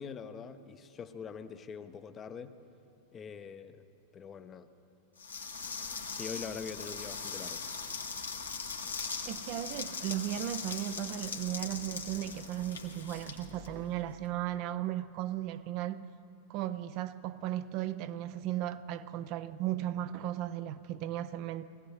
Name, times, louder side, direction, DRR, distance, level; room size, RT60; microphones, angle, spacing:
voice 1, 0.0-2.5 3.1-3.8 4.1-4.7 6.1-7.6, left 6 dB, 25° left, 0.7 m, -43 dB
sound 1, 5.2-14.2, left 5 dB, 75° left, 1.3 m, -40 dB
voice 2, 9.2-16.0 16.5-21.7, right 12 dB, 45° right, 0.4 m, -36 dB
21.5 x 16.0 x 3.2 m
figure-of-eight pair, 90°, 0 cm